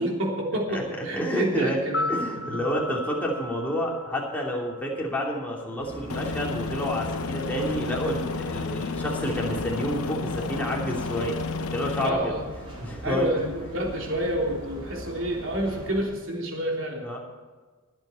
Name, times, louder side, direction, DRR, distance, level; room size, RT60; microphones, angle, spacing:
voice 1, 0.0-2.0 2.3-2.6 12.0-12.4 13.0-17.0, equal, 60° right, -1 dB, 3.2 m, -28 dB
voice 2, 0.7-1.8 2.1-11.4 11.7-12.3 12.8-13.3 17.0-17.2, equal, 10° left, -3 dB, 2.8 m, -29 dB
sound 1, 1.8-6.0 6.2-6.3, left 2 dB, 50° left, 0.8 m, -35 dB
sound 2, 5.8-16.1, right 1 dB, 25° right, 4.3 m, -41 dB
Aircraft, 6.1-12.1, left 4 dB, 80° left, 1.0 m, -31 dB
22.5 x 8.2 x 4.4 m, 1.4 s
head